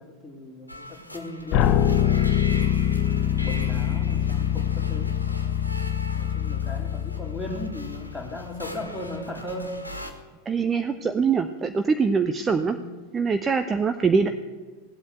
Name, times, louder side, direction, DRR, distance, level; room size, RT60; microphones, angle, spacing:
voice 1, 0.0-2.9 3.4-5.2 6.1-9.8 10.8-11.1 11.6-11.7 12.4-12.8, left 1 dB, 5° left, -1 dB, 2.8 m, -38 dB
sound 1, 0.7-10.1, left 1 dB, 85° left, 1.6 m, -40 dB
sound 2, 1.5-8.4, left 10 dB, 40° left, 0.8 m, -24 dB
voice 2, 10.5-12.8 13.1-14.3, right 5 dB, 20° right, 9 dB, 0.7 m, -23 dB
17.0 x 8.3 x 8.1 m, 1.3 s
figure-of-eight pair, 90°, 0 cm